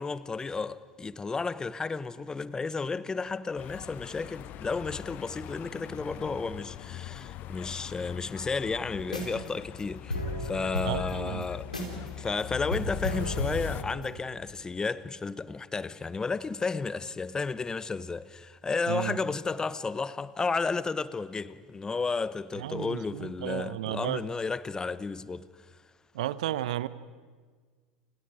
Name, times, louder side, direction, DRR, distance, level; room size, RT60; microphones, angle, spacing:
voice 1, 0.0-11.7 12.2-25.5, left 4 dB, 15° left, 1.0 m, -32 dB
sound 1, 3.6-13.8, left 12 dB, 45° left, 1.0 m, -42 dB
sound 2, 9.0-9.5 9.8-9.9 10.1-12.1 12.4-12.5 12.7-14.2, left 1 dB, 90° left, 4.2 m, -33 dB
voice 2, 10.8-11.5 18.9-19.2 22.6-24.2 26.1-26.9, right 13 dB, 65° right, 0.9 m, -33 dB
29.0 x 28.0 x 4.9 m
figure-of-eight pair, 75°, 4 cm